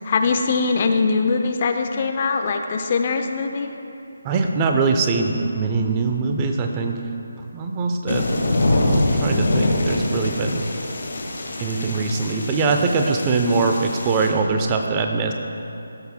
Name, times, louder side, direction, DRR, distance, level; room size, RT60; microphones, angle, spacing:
voice 1, 0.0-3.7, left 4 dB, 35° left, 5 dB, 0.6 m, -22 dB
voice 2, 4.2-7.0 7.5-8.3 8.6-10.7 11.6-15.3, right 4 dB, 20° right, 3 dB, 0.6 m, -22 dB
sound 1, 8.1-14.3, left 1 dB, 55° left, 1.7 m, -24 dB
17.0 x 7.9 x 2.2 m, 2.8 s
figure-of-eight pair, 155°, 0 cm